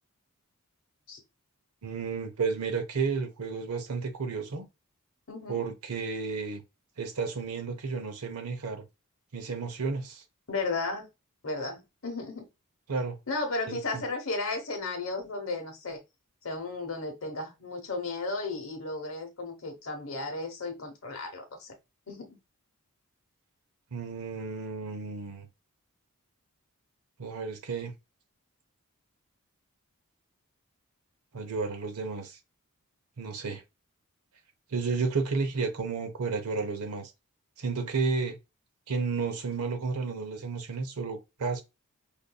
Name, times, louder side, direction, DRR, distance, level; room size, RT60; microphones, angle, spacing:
voice 1, 1.8-4.7 5.5-6.6 7.0-8.8 9.3-10.2 12.9-13.2 13.7-14.0 23.9-25.5 27.2-27.9 31.3-32.4 33.2-33.6 34.7-37.1 37.6-38.4 38.9-41.6, right 4 dB, 85° right, 0.7 m, -32 dB
voice 2, 5.3-5.6 10.5-11.1 11.4-12.5 13.3-16.0 16.4-21.7 22.1-22.4, left 3 dB, 60° left, 1.1 m, -34 dB
5.1 x 2.6 x 2.2 m
head